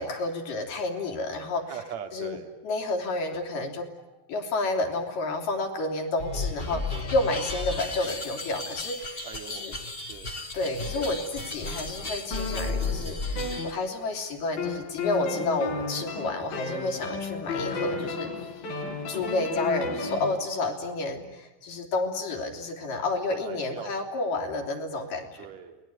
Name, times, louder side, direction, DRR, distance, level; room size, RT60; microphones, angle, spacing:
voice 1, 0.0-1.8 2.1-2.4 2.6-3.9 4.3-9.7 10.5-18.7 19.1-25.5, left 2 dB, 70° left, 3 dB, 4.6 m, -30 dB
voice 2, 1.7-2.5 9.2-9.7 10.0-10.3 11.0-11.2 23.4-23.9 25.4-25.8, right 7 dB, 55° right, 5 dB, 3.2 m, -41 dB
sound 1, 6.2-13.7, left 3 dB, 25° left, 1.3 m, -34 dB
sound 2, 12.3-14.2 14.6-20.4, left 4 dB, 85° left, 5.1 m, -33 dB
29.0 x 20.5 x 9.5 m, 1.1 s
omnidirectional pair, 4.1 m